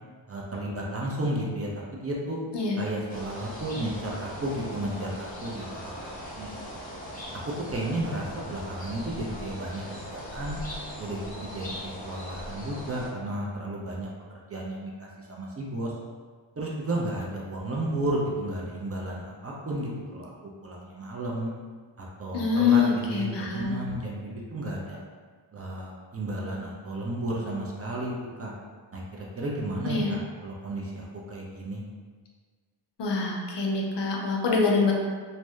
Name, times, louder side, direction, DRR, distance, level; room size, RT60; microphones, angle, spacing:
voice 1, 0.3-2.4 2.8-6.7 7.3-7.4 7.7-10.6 11.0-14.1 14.5-15.9 16.6-20.3 20.6-21.5 22.0-22.8 23.1-25.0 25.5-28.5 28.9-31.8, right 1 dB, 35° right, -3 dB, 0.5 m, -33 dB
sound 1, 3.1-13.1, equal, 20° left, 0.7 m, -40 dB
voice 2, 22.3-23.8 29.8-30.1 33.0-34.9, left 4 dB, 70° left, -1 dB, 0.5 m, -25 dB
2.7 x 2.0 x 2.3 m, 1.5 s
cardioid pair, 65°, 44 cm